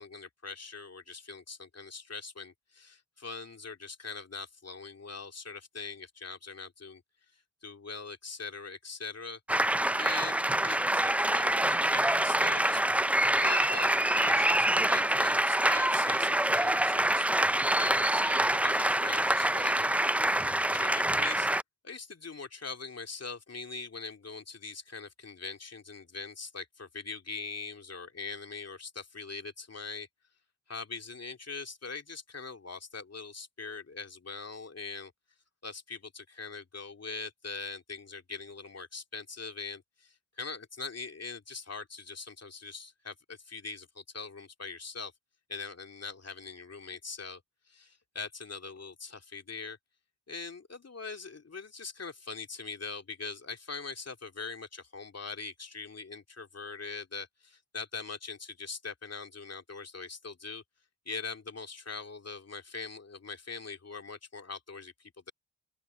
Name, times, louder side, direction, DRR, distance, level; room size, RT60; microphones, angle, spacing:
voice 1, 0.0-7.0 7.3-9.7 10.0-12.9 13.2-17.3 17.7-21.5 21.8-30.1 30.7-35.1 35.6-45.1 45.5-47.4 47.7-49.8 50.3-60.6 61.1-65.3, left 4 dB, 35° left, 2.7 m, -42 dB
sound 1, 9.5-21.6, right 1 dB, 5° right, 0.4 m, -26 dB
open air
supercardioid pair, 55°, 45 cm